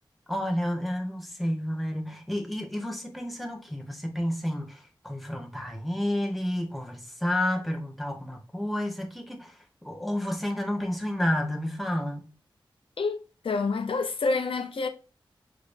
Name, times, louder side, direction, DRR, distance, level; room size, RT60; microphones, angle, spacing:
voice 1, 0.3-9.5 9.8-12.3, left 1 dB, ahead, 1.2 m, -30 dB
voice 2, 13.0-14.9, left 4 dB, 85° left, 0.7 m, -28 dB
5.0 x 3.9 x 2.6 m
wide cardioid pair, 80°, 9 cm